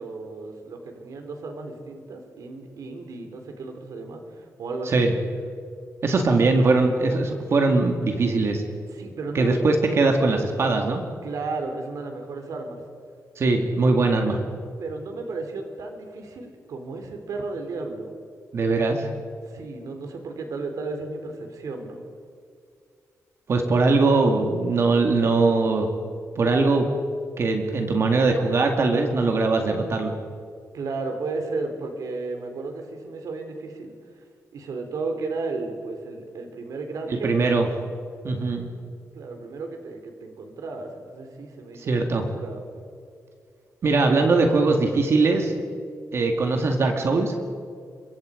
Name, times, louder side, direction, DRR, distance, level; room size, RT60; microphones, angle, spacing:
voice 1, 0.0-5.0 8.9-9.6 11.2-12.8 14.8-18.1 19.4-22.0 30.7-34.2 34.5-37.7 39.1-42.6, right 3 dB, 80° right, 4 dB, 3.7 m, -34 dB
voice 2, 6.0-8.6 9.3-11.0 13.4-14.4 18.5-19.1 23.5-25.9 26.4-26.9 27.4-30.1 37.1-37.7 38.2-38.7 41.9-42.3 43.8-45.5 46.1-47.3, right 3 dB, 50° right, 4 dB, 2.2 m, -21 dB
26.5 x 23.5 x 5.2 m, 2.3 s
wide cardioid pair, 170°, 6 cm